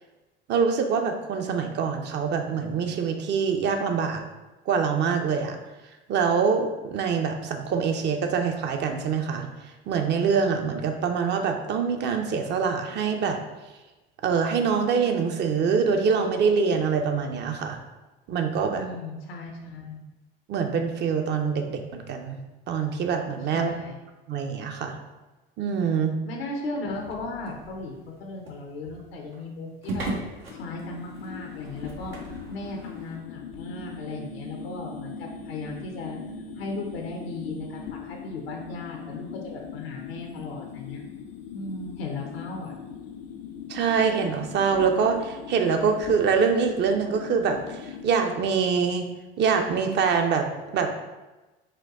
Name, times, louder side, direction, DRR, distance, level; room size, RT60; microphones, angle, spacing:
voice 1, 0.5-4.2 4.7-5.6 6.1-9.5 9.9-13.4 14.2-17.8 18.3-18.9 20.5-22.4 22.7-23.7 24.3-25.0 25.6-26.1 43.7-49.1 49.4-50.5 50.7-50.9, right 6 dB, 35° right, 5 dB, 0.5 m, -24 dB
voice 2, 18.8-20.1 23.5-24.0 26.3-30.1 30.5-32.2 32.5-36.2 36.6-41.0 41.5-42.7, left 2 dB, 80° left, 1 dB, 0.7 m, -36 dB
sound 1, 26.9-33.2, right 2 dB, 80° right, 0.8 m, -39 dB
sound 2, 30.5-48.1, left 6 dB, 50° left, 0.4 m, -40 dB
4.3 x 2.2 x 3.6 m, 1.1 s
hypercardioid pair, 70°, 30 cm